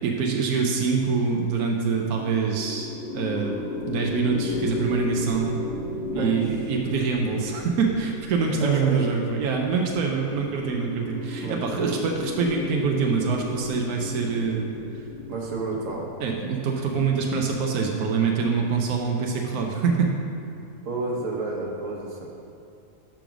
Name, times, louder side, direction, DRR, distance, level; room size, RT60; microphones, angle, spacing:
voice 1, 0.0-3.6 3.9-5.5 6.1-14.7 16.2-20.1, right 5 dB, 85° right, 1 dB, 1.2 m, -25 dB
sound 1, 1.9-19.0, left 3 dB, 90° left, 1.3 m, -35 dB
voice 2, 6.1-6.5 7.3-7.6 8.6-9.0 10.0-10.5 11.4-12.0 15.3-16.1 20.8-22.3, right 3 dB, 60° right, -2 dB, 1.4 m, -31 dB
5.9 x 5.1 x 6.0 m, 2.7 s
omnidirectional pair, 1.5 m